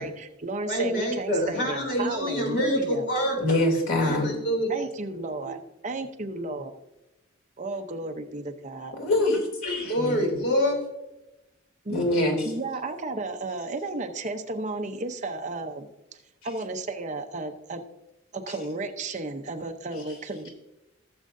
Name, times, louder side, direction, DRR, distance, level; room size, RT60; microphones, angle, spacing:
voice 1, 0.0-3.1 4.7-5.6 5.8-6.7 7.6-9.0 11.8-12.0 12.4-15.9 16.4-17.8 18.3-20.5, right 2 dB, 35° right, 6 dB, 0.8 m, -33 dB
voice 2, 0.6-3.6 4.0-4.7 9.6-10.8, equal, 55° left, 0 dB, 3.3 m, -26 dB
voice 3, 3.4-4.3 9.0-10.2 11.9-12.5, left 1 dB, 90° left, 1 dB, 3.0 m, -24 dB
16.0 x 7.5 x 2.7 m, 0.96 s
head